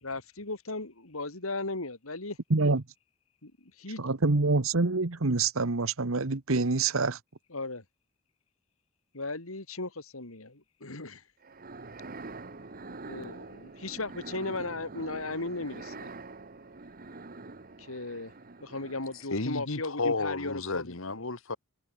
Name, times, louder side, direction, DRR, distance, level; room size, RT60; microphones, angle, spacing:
voice 1, 0.0-2.4 3.4-3.5 3.8-4.0 7.5-7.8 9.1-11.2 13.0-16.1 17.8-18.3 18.6-20.9, left 2 dB, 85° left, 3.5 m, -36 dB
voice 2, 2.5-2.8 4.0-7.2, right 3 dB, 75° right, 1.3 m, -26 dB
sound 1, 11.4-19.4, right 3 dB, 45° right, 1.5 m, -45 dB
voice 3, 19.3-21.6, left 3 dB, 70° left, 2.0 m, -32 dB
head